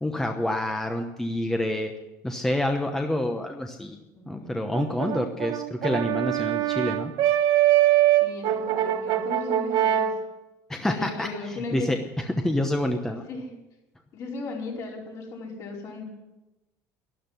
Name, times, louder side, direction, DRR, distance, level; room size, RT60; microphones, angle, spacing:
voice 1, 0.0-1.9 2.2-4.0 4.3-7.1 10.7-13.2, left 1 dB, 5° left, 4 dB, 0.9 m, -28 dB
voice 2, 4.1-4.6 8.1-10.1 10.8-11.9 13.3-13.5 14.1-16.2, left 3 dB, 50° left, -2 dB, 4.9 m, -36 dB
Brass instrument, 4.7-10.2, right 13 dB, 65° right, 1.1 m, -23 dB
12.5 x 12.0 x 7.6 m, 1.0 s
cardioid pair, 140°, 7 cm